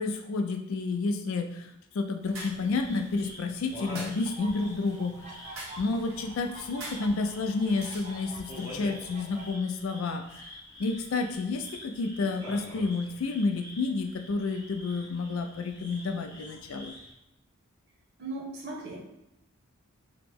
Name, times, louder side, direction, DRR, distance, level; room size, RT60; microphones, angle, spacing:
voice 1, 0.0-1.7 1.9-5.5 5.8-17.0, left 3 dB, 70° left, 5 dB, 0.4 m, -30 dB
sound 1, 2.2-9.5, right 1 dB, 70° right, 1.0 m, -47 dB
sound 2, 2.4-17.1, left 1 dB, 20° left, 0.8 m, -47 dB
sound 3, 4.3-9.4, right 2 dB, 35° right, 0.5 m, -48 dB
voice 2, 18.2-19.0, right 2 dB, 50° right, -3 dB, 0.9 m, -37 dB
2.9 x 2.0 x 3.5 m, 0.88 s
head